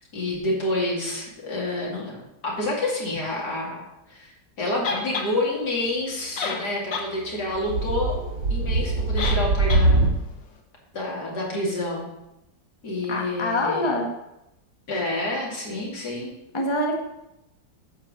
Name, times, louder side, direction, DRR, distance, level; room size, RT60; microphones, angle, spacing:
voice 1, 0.1-3.8 4.1-4.3 4.6-8.2 8.5-10.1 10.9-12.1 12.8-13.9 14.9-16.3, left 1 dB, 65° left, -3 dB, 3.1 m, -28 dB
sound 1, 4.8-5.3 6.1-6.2 6.4-7.1 7.5-7.6 9.2-9.4 9.7-9.8, left 4 dB, 80° left, 1.8 m, -28 dB
sound 2, 7.3-10.2, right 2 dB, 75° right, 2.0 m, -22 dB
voice 2, 13.1-14.1 16.5-17.0, left 1 dB, 20° left, 1 dB, 1.0 m, -25 dB
10.5 x 4.7 x 7.7 m, 0.89 s
omnidirectional pair, 1.9 m